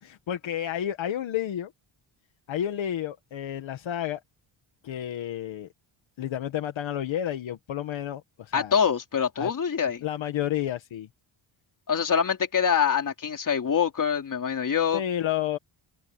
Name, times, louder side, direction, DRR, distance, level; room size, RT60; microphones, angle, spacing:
voice 1, 0.0-1.7 2.5-4.2 4.8-5.7 6.2-8.7 9.4-9.5 10.0-11.1 14.9-15.6, left 11 dB, 65° left, 1.7 m, -31 dB
voice 2, 8.5-10.0 11.9-15.0, left 7 dB, 40° left, 3.4 m, -25 dB
open air
wide cardioid pair, 150°, 50 cm